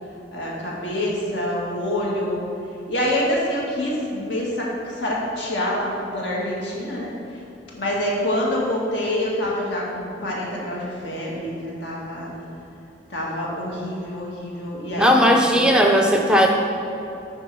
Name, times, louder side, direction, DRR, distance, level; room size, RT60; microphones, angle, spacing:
voice 1, 0.3-2.4 2.9-7.1 7.7-12.3 13.1-15.3, left 1 dB, 70° left, -4 dB, 1.8 m, -26 dB
voice 2, 15.0-16.5, equal, 5° right, 2 dB, 0.4 m, -16 dB
9.8 x 3.7 x 6.1 m, 2.9 s
head